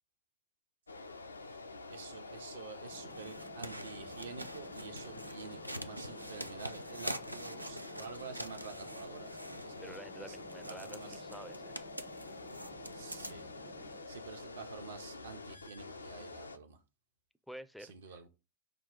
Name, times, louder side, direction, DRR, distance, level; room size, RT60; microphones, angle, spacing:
sound 1, 0.9-16.6, left 3 dB, 80° left, 0.4 m, -47 dB
voice 1, 1.9-10.4 10.7-11.2 12.9-13.5 14.1-16.8 17.8-18.3, right 5 dB, 65° right, 0.8 m, -49 dB
sound 2, 2.9-14.0, right 7 dB, 30° right, 0.7 m, -57 dB
sound 3, 3.0-10.0 10.4-13.6 13.9-14.0, equal, 85° right, 0.4 m, -46 dB
voice 2, 9.8-11.8 17.5-18.2, equal, ahead, 0.4 m, -50 dB
5.8 x 2.3 x 3.8 m
figure-of-eight pair, 90°, 0 cm